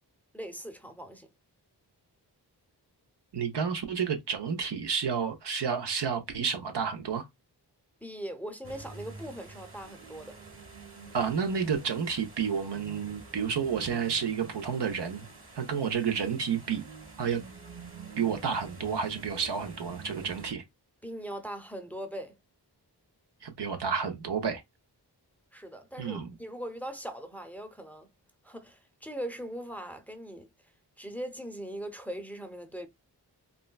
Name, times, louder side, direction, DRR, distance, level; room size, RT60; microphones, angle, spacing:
voice 1, 0.3-1.3 8.0-10.4 21.0-22.4 25.5-28.1 28.4-30.5 31.0-32.9, right 1 dB, 5° left, 0.6 m, -40 dB
voice 2, 3.3-7.3 11.1-15.3 15.6-16.8 17.2-17.4 18.2-20.6 23.4-24.6 26.0-26.3, right 6 dB, 75° right, 0.8 m, -30 dB
sound 1, 8.6-20.5, right 4 dB, 30° right, 1.0 m, -47 dB
3.7 x 2.1 x 2.2 m
cardioid pair, 50°, 41 cm